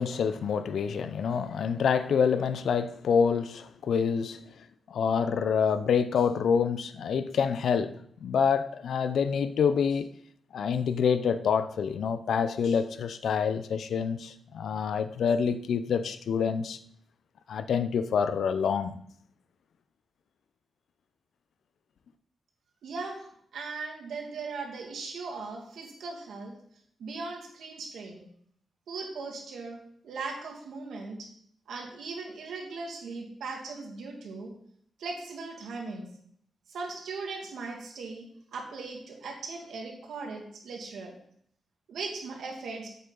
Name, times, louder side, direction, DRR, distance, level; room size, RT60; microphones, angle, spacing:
voice 1, 0.0-4.5 4.9-10.1 10.5-16.8 17.5-19.0, left 6 dB, 70° left, 0.5 m, -27 dB
voice 2, 22.8-23.3 23.5-26.5 27.0-28.2 28.9-29.8 30.0-31.3 31.7-34.5 35.0-36.1 36.7-41.2 41.9-42.9, right 4 dB, 85° right, 2.2 m, -38 dB
8.4 x 8.0 x 3.9 m
wide cardioid pair, 160°, 0 cm